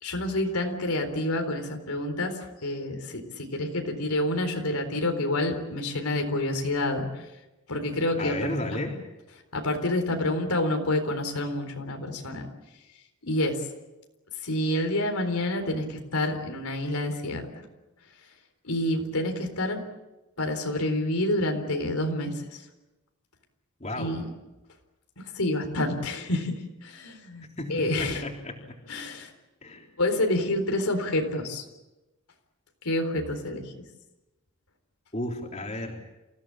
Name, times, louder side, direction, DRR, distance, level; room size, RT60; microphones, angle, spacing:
voice 1, 0.0-7.2 7.7-8.5 9.5-12.5 13.3-13.6 14.4-17.6 18.6-19.9 20.4-22.6 24.0-24.2 25.2-28.2 28.9-29.3 30.0-31.6 32.8-33.8, left 1 dB, 85° left, 5 dB, 4.0 m, -28 dB
voice 2, 8.2-9.0 23.8-24.2 27.6-28.7 29.6-29.9 35.1-36.0, left 1 dB, 30° left, 1 dB, 3.5 m, -33 dB
28.0 x 16.5 x 8.9 m, 1.0 s
head